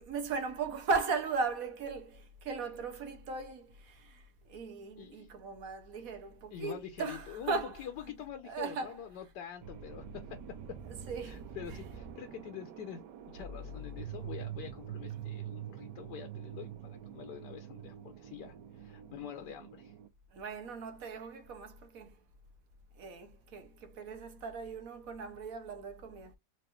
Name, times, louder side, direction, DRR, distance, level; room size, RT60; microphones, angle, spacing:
voice 1, 0.0-4.2 4.5-7.8 8.5-8.9 11.1-11.4 20.3-22.1 23.0-26.4, right 4 dB, 60° right, 1.1 m, -37 dB
voice 2, 5.0-5.3 6.5-10.4 10.7-10.8 11.2-19.9, left 9 dB, 75° left, 1.2 m, -46 dB
sound 1, 9.6-20.1, right 7 dB, 75° right, 1.2 m, -45 dB
4.6 x 2.6 x 2.9 m
omnidirectional pair, 1.9 m